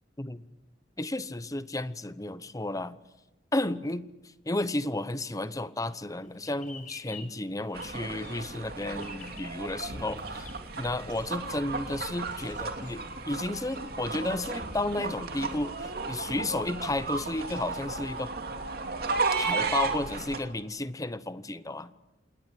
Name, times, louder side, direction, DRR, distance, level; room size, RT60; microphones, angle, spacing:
voice 1, 1.0-3.0 3.5-4.0 4.4-10.5 10.8-18.3 19.4-21.9, left 2 dB, 20° left, 14 dB, 0.9 m, -32 dB
sound 1, 6.2-13.8, left 4 dB, 50° left, 5.2 m, -51 dB
sound 2, 7.7-20.4, right 3 dB, 60° right, 2.7 m, -34 dB
28.0 x 20.0 x 8.4 m, 0.99 s
head